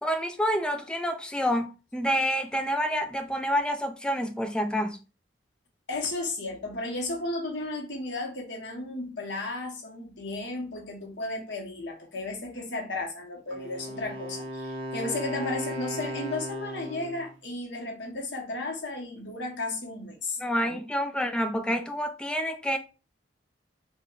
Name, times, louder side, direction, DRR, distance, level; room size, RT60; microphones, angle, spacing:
voice 1, 0.0-5.0 20.4-22.8, equal, 5° left, 0.3 m, -28 dB
voice 2, 5.9-20.4, left 2 dB, 70° left, 1.0 m, -34 dB
Wind instrument woodwind instrument, 13.5-17.3, equal, 80° right, 0.8 m, -36 dB
3.5 x 2.2 x 3.6 m
head